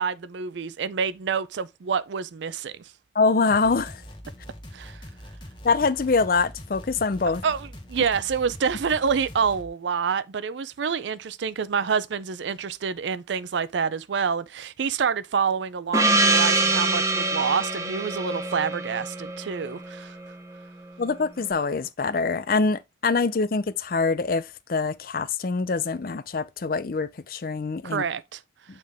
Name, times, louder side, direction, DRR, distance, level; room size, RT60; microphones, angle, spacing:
voice 1, 0.0-2.8 4.7-5.0 7.4-20.2 27.8-28.4, right 6 dB, 75° right, 0.4 m, -27 dB
voice 2, 3.1-4.0 5.6-7.4 21.0-28.0, left 4 dB, 50° left, 0.5 m, -24 dB
sound 1, 3.5-9.7, equal, 25° left, 1.2 m, -43 dB
Gong, 15.9-20.3, right 2 dB, 15° right, 0.7 m, -24 dB
8.6 x 3.8 x 3.4 m
head